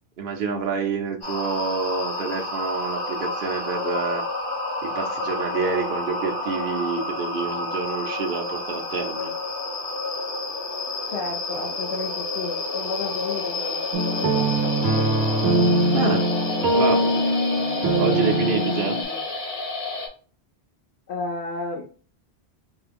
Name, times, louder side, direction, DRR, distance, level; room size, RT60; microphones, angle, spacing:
voice 1, 0.2-4.2 4.8-9.3 15.9-16.3 16.7-17.0 18.0-19.0, right 4 dB, 55° right, 2 dB, 0.9 m, -27 dB
sound 1, 1.2-20.1, left 2 dB, 55° left, 1.7 m, -30 dB
voice 2, 11.0-15.6 16.5-18.2 18.8-19.3 21.1-21.9, left 3 dB, 80° left, 1 dB, 1.0 m, -34 dB
sound 2, 13.9-19.0, right 1 dB, 90° right, 1.0 m, -22 dB
4.5 x 2.2 x 3.3 m, 0.40 s
omnidirectional pair, 1.1 m